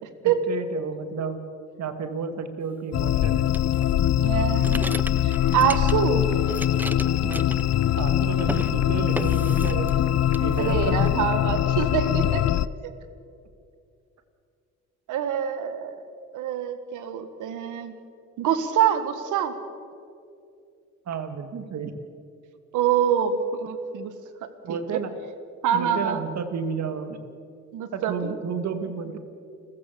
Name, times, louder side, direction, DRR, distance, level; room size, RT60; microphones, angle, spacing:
voice 1, 0.2-1.4 1.8-3.5 7.2-7.5 8.0-9.9 10.4-11.0 21.1-22.0 24.6-25.1 25.7-27.2 27.9-29.2, right 6 dB, 60° right, 8 dB, 2.2 m, -32 dB
sound 1, 2.9-12.7, left 11 dB, 60° left, 0.6 m, -23 dB
sound 2, 3.5-6.2 6.4-8.1 8.4-8.7 9.1-10.0 10.3-11.1, right 1 dB, 5° right, 0.7 m, -36 dB
voice 2, 4.2-5.0 5.2-6.3 10.6-12.4 15.1-16.0 16.3-17.9 18.4-19.6 22.7-24.1 24.7-25.0 25.6-26.2 27.7-28.3, right 8 dB, 85° right, 10 dB, 1.8 m, -25 dB
sound 3, 4.5-9.5, left 2 dB, 25° left, 3.3 m, -44 dB
29.0 x 15.0 x 7.0 m, 2.5 s
cardioid pair, 90°, 30 cm